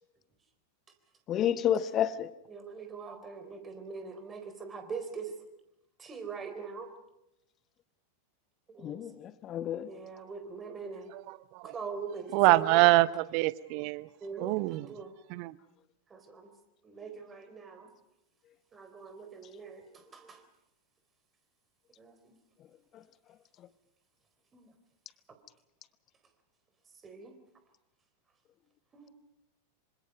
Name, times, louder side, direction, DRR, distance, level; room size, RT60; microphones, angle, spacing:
voice 1, 1.3-2.3 8.8-9.9, left 10 dB, 30° left, 1.0 m, -30 dB
voice 2, 2.5-5.3 6.0-6.9 8.7-9.0 9.9-11.1 11.6-12.9 14.2-15.1 16.1-16.5 16.8-17.9 18.7-19.8 20.1-20.4 22.0-22.1 24.5-24.7 27.0-27.3 28.9-29.1, right 5 dB, 20° right, 4.0 m, -42 dB
voice 3, 12.3-14.1 14.4-14.9 15.3-15.5, right 21 dB, 45° right, 0.8 m, -25 dB
26.5 x 25.5 x 5.4 m
figure-of-eight pair, 90°, 0 cm